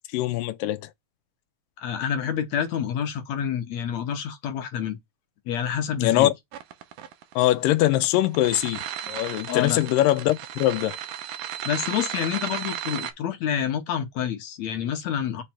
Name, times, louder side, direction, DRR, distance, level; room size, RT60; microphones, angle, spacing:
voice 1, 0.1-0.9 6.0-6.3 7.4-8.8 9.1-11.0, left 15 dB, 85° left, 2.3 m, -22 dB
voice 2, 1.8-5.0 5.5-6.3 9.5-9.8 11.6-15.4, left 8 dB, 70° left, 1.9 m, -28 dB
sound 1, 6.5-13.1, right 11 dB, 75° right, 2.4 m, -35 dB
7.2 x 3.3 x 5.7 m
omnidirectional pair, 3.9 m